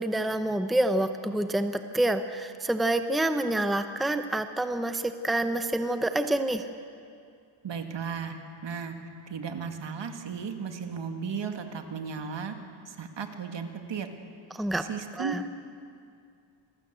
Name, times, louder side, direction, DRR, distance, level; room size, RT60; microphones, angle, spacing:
voice 1, 0.0-6.7 14.5-14.8 15.2-15.4, right 1 dB, ahead, 8 dB, 0.8 m, -27 dB
voice 2, 7.6-8.4 8.6-9.0 9.3-12.6 12.9-14.1 14.9-15.5, right 6 dB, 65° right, 6 dB, 2.1 m, -35 dB
27.0 x 19.5 x 8.1 m, 2.4 s
wide cardioid pair, 150°, 47 cm